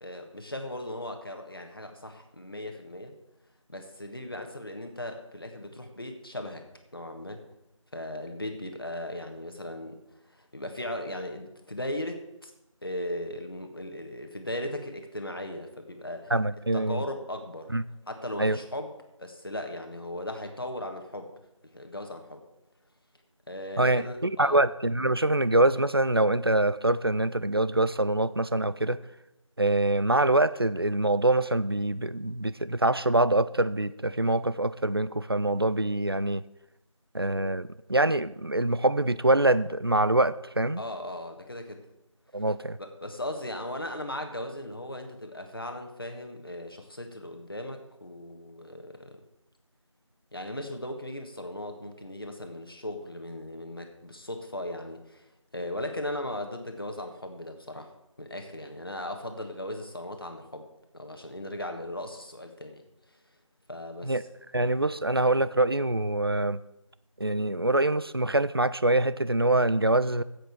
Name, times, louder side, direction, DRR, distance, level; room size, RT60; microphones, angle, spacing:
voice 1, 0.0-3.1 3.7-6.6 6.9-7.4 7.9-10.0 10.3-12.5 12.8-16.3 16.7-17.7 18.1-18.9 19.2-21.3 21.7-22.4 23.5-24.6 40.8-41.8 42.8-49.2 50.3-55.3 55.5-57.9 58.2-60.7 60.9-62.8 63.7-64.2, left 1 dB, 45° left, 5 dB, 1.5 m, -37 dB
voice 2, 16.3-17.0 17.7-17.8 18.4-18.6 23.8-29.0 29.6-36.4 37.1-40.8 42.3-42.8 64.0-64.2 64.5-66.6 67.2-70.2, right 2 dB, 45° right, 16 dB, 0.4 m, -24 dB
7.9 x 7.6 x 8.2 m, 0.90 s
figure-of-eight pair, 175°, 17 cm